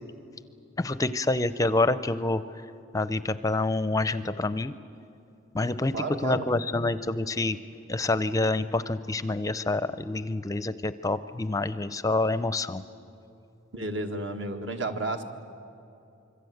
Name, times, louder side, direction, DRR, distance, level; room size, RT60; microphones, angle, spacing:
voice 1, 0.8-2.4 2.9-4.7 5.5-5.9 6.2-7.6 7.9-12.8, left 2 dB, 15° left, 13 dB, 0.5 m, -27 dB
voice 2, 5.9-6.5 13.7-15.2, right 2 dB, 65° right, 5 dB, 1.8 m, -31 dB
26.0 x 24.0 x 8.0 m, 2.8 s
head